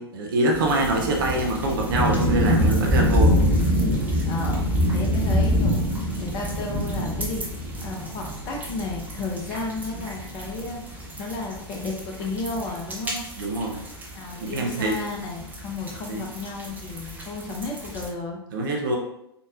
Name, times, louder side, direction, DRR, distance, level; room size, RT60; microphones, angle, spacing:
voice 1, 0.0-3.4 13.4-13.8 14.4-15.0 16.1-16.2 18.5-19.0, right 1 dB, 55° right, 1 dB, 0.8 m, -24 dB
sound 1, 0.5-18.1, equal, 10° right, 0.8 m, -26 dB
voice 2, 4.2-4.7 4.9-5.9 6.2-13.2 14.1-18.4, left 3 dB, 30° left, 1 dB, 0.9 m, -33 dB
4.0 x 3.9 x 2.4 m, 0.78 s
figure-of-eight pair, 100°, 13 cm